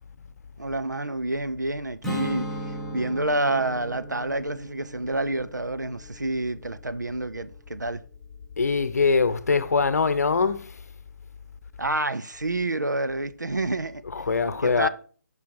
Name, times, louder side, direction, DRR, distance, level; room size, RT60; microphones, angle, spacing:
voice 1, 0.6-8.0 11.8-14.0 14.6-14.9, right 2 dB, 85° right, 0.7 m, -28 dB
Strum, 2.0-7.4, equal, ahead, 1.0 m, -37 dB
voice 2, 8.6-10.7 14.0-14.9, left 4 dB, 60° left, 0.8 m, -23 dB
10.5 x 5.3 x 4.7 m
figure-of-eight pair, 145°, 10 cm